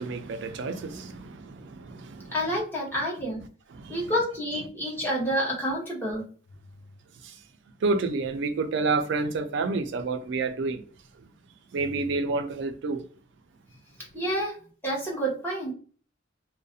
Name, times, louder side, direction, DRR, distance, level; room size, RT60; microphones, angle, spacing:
voice 1, 0.0-2.3 3.7-4.0 7.2-7.3 7.8-10.8 11.7-13.0, right 3 dB, 60° right, 0.3 m, -29 dB
voice 2, 2.3-3.4 3.9-6.2 14.1-14.5 14.8-15.7, equal, 10° left, 0.8 m, -28 dB
2.3 x 2.1 x 2.6 m
head